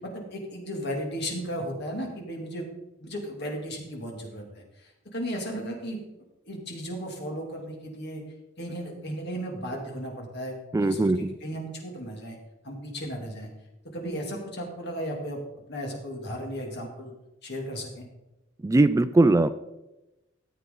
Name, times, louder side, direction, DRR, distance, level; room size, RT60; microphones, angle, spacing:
voice 1, 0.0-2.6 3.0-6.0 6.5-8.2 8.6-12.4 12.6-13.5 13.9-15.4 15.7-17.1 17.4-18.0, equal, 60° left, 0 dB, 2.5 m, -35 dB
voice 2, 10.7-11.4 18.6-19.5, right 2 dB, 15° right, 13 dB, 0.3 m, -20 dB
14.0 x 8.2 x 3.8 m, 0.96 s
head